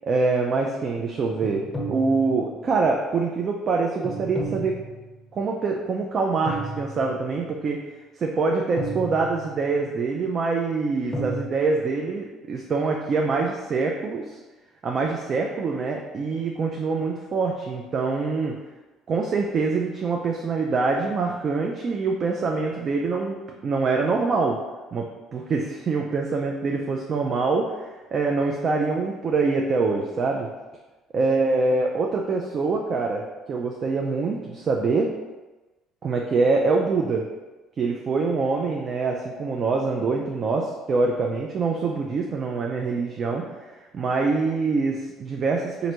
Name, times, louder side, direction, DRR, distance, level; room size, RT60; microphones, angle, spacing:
voice 1, 0.0-4.8 5.3-7.8 8.2-14.4 14.8-18.5 19.1-24.6 24.9-25.1 25.3-30.5 31.1-33.2 33.5-35.1 36.0-37.2 37.8-45.9, right 4 dB, 45° right, 1 dB, 0.4 m, -25 dB
sound 1, 1.4-2.7 4.0-5.3 6.5-7.4 8.8-9.7 11.1-11.5, right 1 dB, 5° left, 1.0 m, -33 dB
4.0 x 2.6 x 2.9 m, 1.2 s
hypercardioid pair, 60°, 0 cm